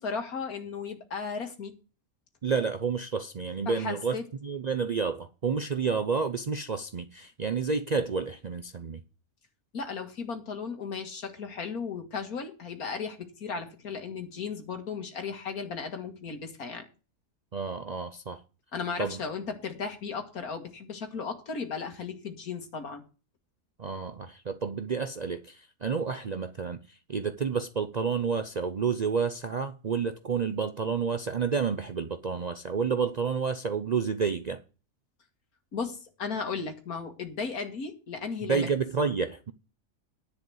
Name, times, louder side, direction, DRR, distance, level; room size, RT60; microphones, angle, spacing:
voice 1, 0.0-1.7 3.7-4.2 9.7-16.9 18.7-23.0 35.7-38.7, left 5 dB, 90° left, 2.3 m, -35 dB
voice 2, 2.4-4.1 4.4-9.0 17.5-18.4 19.0-19.2 23.8-34.6 38.4-39.5, right 5 dB, 55° right, 0.5 m, -30 dB
10.5 x 5.1 x 7.7 m
omnidirectional pair, 1.5 m